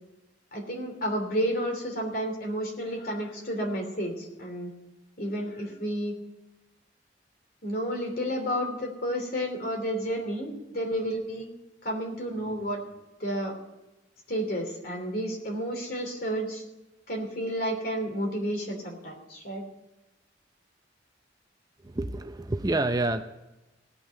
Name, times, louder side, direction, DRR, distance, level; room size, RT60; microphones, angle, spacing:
voice 1, 0.5-4.7 5.2-6.2 7.6-11.5 11.8-12.8 13.2-13.5 14.3-16.6 17.1-19.6, equal, 50° left, 1 dB, 3.1 m, -31 dB
voice 2, 21.8-23.2, right 2 dB, 20° right, 7 dB, 0.5 m, -28 dB
17.0 x 6.1 x 8.1 m, 1.0 s
head